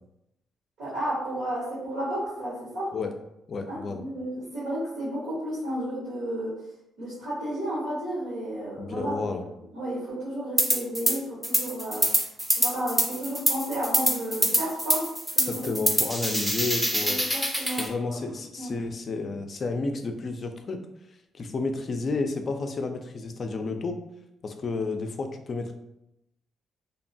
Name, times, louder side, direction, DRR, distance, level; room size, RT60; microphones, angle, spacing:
voice 1, 0.8-2.9 3.7-6.5 7.0-9.1 9.7-12.1 12.6-15.1 15.3-15.7 17.0-18.1 18.5-18.8, right 1 dB, 80° right, -9 dB, 1.0 m, -32 dB
voice 2, 3.5-4.0 8.8-9.4 15.4-17.2 17.8-20.8 21.3-24.0 24.4-25.7, left 3 dB, 45° left, 6 dB, 0.3 m, -31 dB
sound 1, 10.6-11.1 11.4-17.9, equal, 5° right, 0.5 m, -25 dB
2.8 x 2.1 x 2.6 m, 0.85 s
cardioid pair, 90°, 0 cm